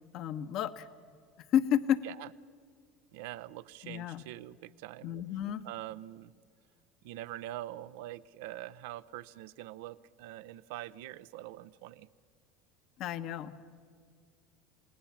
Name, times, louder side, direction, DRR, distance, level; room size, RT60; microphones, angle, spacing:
voice 1, 0.1-0.9 1.5-2.0 3.8-4.2 5.0-5.6 13.0-13.5, left 10 dB, 60° left, 11 dB, 1.1 m, -31 dB
voice 2, 3.1-5.1 5.6-6.3 7.0-12.1, right 14 dB, 75° right, 16 dB, 0.6 m, -44 dB
28.0 x 19.5 x 7.2 m, 2.1 s
hypercardioid pair, 85°, 0 cm